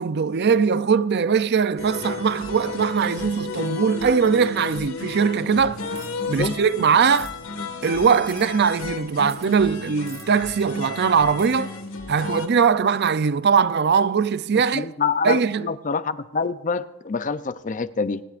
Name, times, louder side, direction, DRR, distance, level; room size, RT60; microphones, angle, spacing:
voice 1, 0.0-5.8 6.3-7.3 7.8-11.7 12.1-14.9 15.2-15.7, right 6 dB, 50° right, 0.5 m, -21 dB
sound 1, 1.8-12.5, left 3 dB, 65° left, 1.8 m, -33 dB
sound 2, 5.9-6.3 7.1-7.3 8.3-8.5 9.3-9.5 10.1-10.3 11.4-11.6, right 8 dB, 30° right, 1.2 m, -44 dB
voice 2, 14.7-18.2, left 5 dB, 35° left, 0.5 m, -26 dB
25.0 x 19.5 x 2.5 m
head